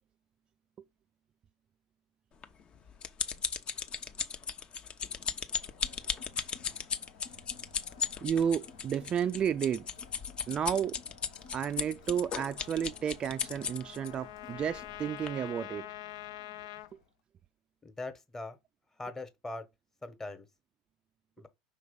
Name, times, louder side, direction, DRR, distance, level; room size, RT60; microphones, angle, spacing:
sound 1, 2.4-14.1 14.7-14.9 15.3-15.4, left 7 dB, 35° left, 0.9 m, -36 dB
Crowd, 5.5-17.1, left 5 dB, 85° left, 2.2 m, -56 dB
voice 1, 8.2-9.9 10.5-11.0 11.5-15.9 16.9-17.0, right 8 dB, 35° right, 0.4 m, -32 dB
Trumpet, 12.5-16.9, left 15 dB, 70° left, 0.5 m, -46 dB
voice 2, 17.8-18.6 19.0-19.7 20.0-20.5 21.4-21.5, left 2 dB, 15° left, 1.3 m, -41 dB
5.7 x 3.1 x 5.3 m
hypercardioid pair, 95°, 3 cm